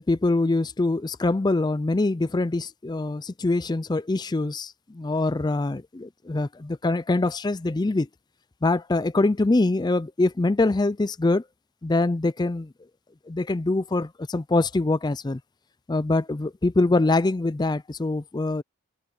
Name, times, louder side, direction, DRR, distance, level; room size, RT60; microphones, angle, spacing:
voice 1, 0.0-8.1 8.6-11.4 11.8-12.7 13.3-15.4 15.9-18.6, left 2 dB, 20° left, 0.4 m, -24 dB
head